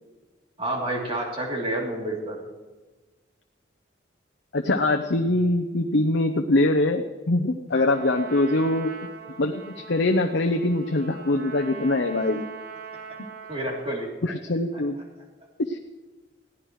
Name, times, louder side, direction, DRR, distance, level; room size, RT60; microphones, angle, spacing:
voice 1, 0.6-2.4 13.5-14.1, right 1 dB, 30° right, -1 dB, 3.0 m, -29 dB
voice 2, 4.5-8.9 9.4-12.5 14.2-15.0 15.6-15.8, left 2 dB, 65° left, 4 dB, 0.8 m, -23 dB
Trumpet, 7.7-14.0, right 6 dB, 55° right, 1.4 m, -41 dB
21.5 x 15.5 x 3.2 m, 1.2 s
head